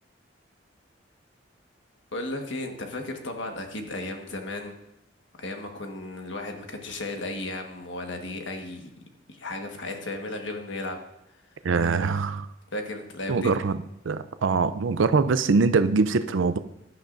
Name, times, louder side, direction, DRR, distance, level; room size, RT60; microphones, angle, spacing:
voice 1, 2.1-4.7 5.4-8.9 9.3-11.0 11.9-12.0 12.7-13.5, left 2 dB, 75° left, 4 dB, 1.5 m, -34 dB
voice 2, 11.6-12.5 13.3-13.8 14.0-16.6, right 4 dB, 80° right, 12 dB, 0.5 m, -23 dB
17.0 x 11.5 x 2.6 m, 0.87 s
head